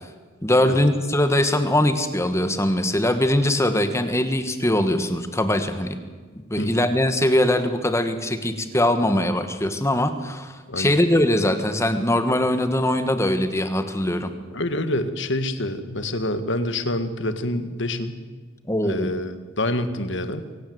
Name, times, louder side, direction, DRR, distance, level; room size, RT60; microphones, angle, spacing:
voice 1, 0.4-6.0 6.5-14.3 18.7-19.1, left 1 dB, 15° left, 9 dB, 1.4 m, -21 dB
voice 2, 14.5-18.2 18.8-20.5, left 1 dB, 60° left, 10 dB, 1.8 m, -27 dB
23.5 x 18.0 x 7.9 m, 1.5 s
head